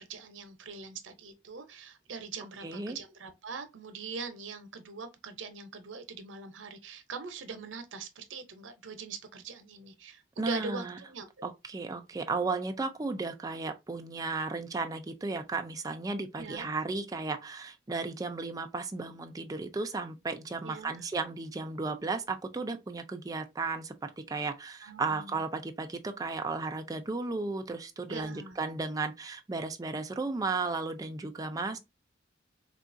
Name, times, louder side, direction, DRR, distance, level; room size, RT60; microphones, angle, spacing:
voice 1, 0.0-11.5 16.4-16.7 20.6-21.0 24.8-25.4 28.1-28.6, right 4 dB, 90° right, 0.6 m, -42 dB
voice 2, 2.6-3.0 10.4-11.0 11.4-31.8, right 3 dB, 20° right, 0.4 m, -34 dB
3.6 x 2.3 x 2.6 m
head